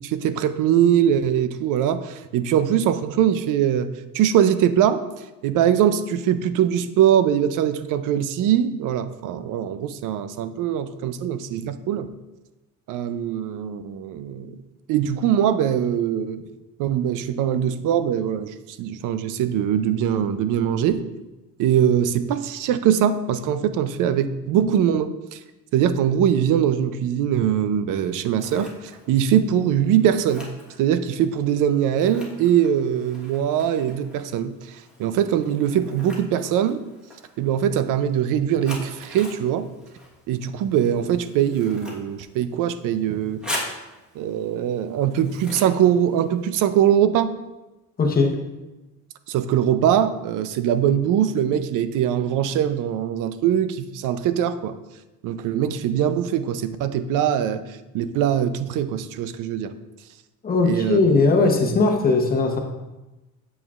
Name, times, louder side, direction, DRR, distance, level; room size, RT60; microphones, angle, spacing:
voice 1, 0.0-3.9 4.1-12.1 12.9-14.6 14.9-16.4 16.8-21.1 21.6-25.4 25.7-30.5 30.8-36.8 37.4-39.7 40.3-43.5 44.1-47.3 49.3-54.8 55.2-59.7 60.6-61.0, right 9 dB, 70° right, 12 dB, 0.5 m, -22 dB
Scissors, 28.0-46.8, left 1 dB, 5° right, 1.2 m, -42 dB
voice 2, 48.0-48.4 60.4-62.6, left 3 dB, 25° left, 3 dB, 0.9 m, -19 dB
8.2 x 7.1 x 2.4 m, 1.1 s
cardioid pair, 140°, 33 cm